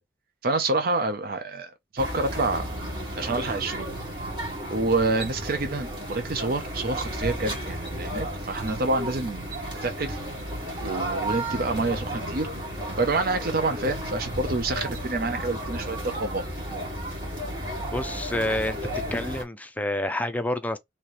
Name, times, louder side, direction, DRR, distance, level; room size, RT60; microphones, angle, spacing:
voice 1, 0.4-2.6 3.1-3.9 4.7-10.2 10.8-12.5 13.0-16.5, right 3 dB, 55° right, 0.6 m, -27 dB
sound 1, 2.0-19.4, equal, 25° right, 1.6 m, -33 dB
voice 2, 17.9-18.8 19.1-20.8, left 1 dB, 10° left, 0.4 m, -28 dB
3.1 x 2.9 x 4.2 m
head